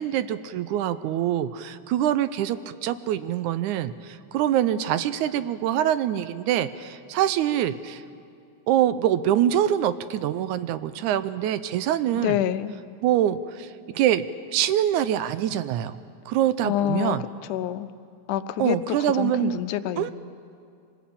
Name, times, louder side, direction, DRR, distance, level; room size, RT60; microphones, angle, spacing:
voice 1, 0.0-8.0 8.7-12.4 13.0-14.2 14.5-16.0 16.3-17.2 18.6-19.6 20.0-20.1, right 11 dB, 80° right, 13 dB, 2.1 m, -24 dB
voice 2, 12.1-12.8 16.6-17.2 17.5-17.9 18.3-20.1, left 12 dB, 80° left, 12 dB, 2.2 m, -27 dB
25.0 x 19.5 x 8.6 m, 2.4 s
omnidirectional pair, 3.5 m